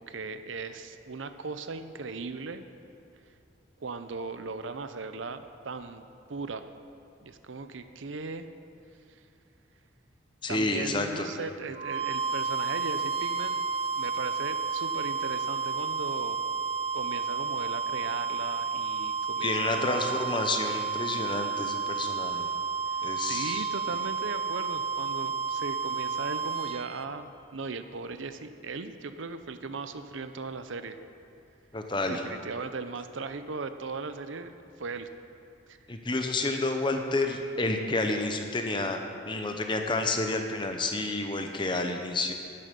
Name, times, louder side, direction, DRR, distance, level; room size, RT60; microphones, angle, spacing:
voice 1, 0.0-2.6 3.8-6.0 6.3-6.7 7.2-8.5 9.1-9.2 10.5-13.7 14.0-16.4 16.9-20.2 22.9-31.0 32.0-35.1 35.7-35.8, right 4 dB, 75° right, 10 dB, 0.7 m, -38 dB
voice 2, 10.4-11.3 19.4-22.5 23.0-23.7 31.7-32.2 35.9-39.0 39.2-42.3, left 2 dB, 25° left, 4 dB, 0.9 m, -30 dB
sound 1, 11.7-27.0, right 5 dB, 30° right, 0.3 m, -31 dB
13.0 x 9.9 x 5.3 m, 2.7 s
head